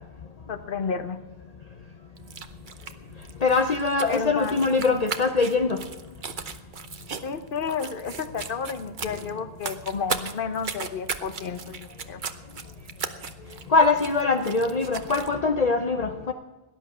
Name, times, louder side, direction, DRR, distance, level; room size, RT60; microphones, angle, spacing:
voice 1, 0.5-1.2 4.1-5.0 7.2-12.2, left 6 dB, 60° left, 10 dB, 1.2 m, -32 dB
sound 1, 2.2-15.3, right 6 dB, 55° right, 1.0 m, -38 dB
voice 2, 3.4-5.8 13.7-16.3, left 4 dB, 45° left, 5 dB, 0.8 m, -22 dB
18.0 x 11.0 x 6.1 m, 1.2 s
omnidirectional pair, 1.0 m